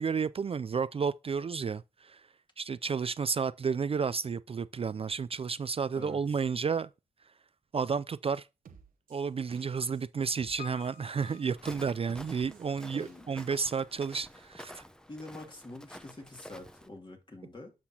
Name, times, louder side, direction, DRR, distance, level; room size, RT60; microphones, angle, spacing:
voice 1, 0.0-2.2 2.6-6.9 7.7-8.5 9.1-14.8, right 5 dB, 45° right, 0.4 m, -32 dB
sound 1, 8.2-8.3 8.7-10.0 10.4-11.8 12.1-13.5 13.8-13.9, right 6 dB, 80° right, 1.0 m, -55 dB
Piano, 10.6-12.6 12.9-13.0, left 8 dB, 70° left, 0.6 m, -50 dB
Walk footsteps, 11.5-16.9, equal, 5° left, 0.7 m, -50 dB
voice 2, 12.9-13.3 15.1-17.7, left 2 dB, 35° left, 2.5 m, -46 dB
10.0 x 6.0 x 2.8 m
cardioid pair, 55°, 14 cm